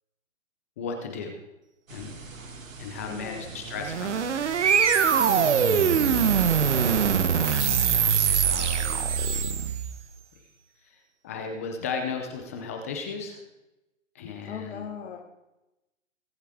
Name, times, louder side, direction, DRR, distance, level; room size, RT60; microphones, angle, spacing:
voice 1, 0.8-1.4 1.9-2.1 2.8-4.3 7.3-9.1 10.8-13.4 14.1-14.8, left 5 dB, 10° left, 4 dB, 0.6 m, -36 dB
sound 1, 1.9-7.8, right 3 dB, 80° right, 2.8 m, -43 dB
voice 2, 3.1-3.5 5.2-5.6 14.5-15.2, left 7 dB, 55° left, -1 dB, 2.4 m, -38 dB
sound 2, 3.7-10.0, right 7 dB, 60° right, 1.3 m, -23 dB
22.5 x 8.3 x 3.6 m, 0.96 s
hypercardioid pair, 160°, 39 cm